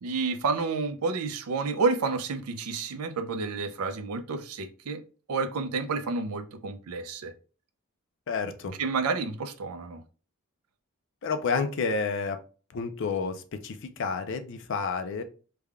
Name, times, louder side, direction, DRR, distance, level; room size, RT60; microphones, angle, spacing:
voice 1, 0.0-5.0 5.3-7.3 8.7-10.0, right 4 dB, 90° right, 0.5 m, -30 dB
voice 2, 8.3-8.7 11.2-12.4 12.7-13.3 13.6-15.2, left 4 dB, 55° left, 0.4 m, -29 dB
3.3 x 2.2 x 3.4 m
head